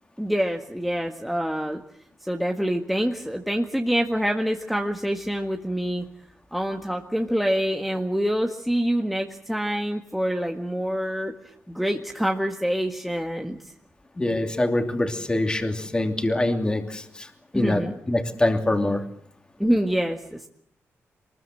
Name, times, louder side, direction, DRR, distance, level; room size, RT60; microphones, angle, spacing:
voice 1, 0.2-1.8 2.2-6.0 6.5-11.3 11.7-13.6 17.5-17.9 19.6-20.5, equal, ahead, 2 dB, 1.6 m, -26 dB
voice 2, 14.2-17.3 17.5-19.0, left 1 dB, 15° left, 5 dB, 2.9 m, -24 dB
24.0 x 21.0 x 7.9 m, 0.67 s
cardioid pair, 105°, 5 cm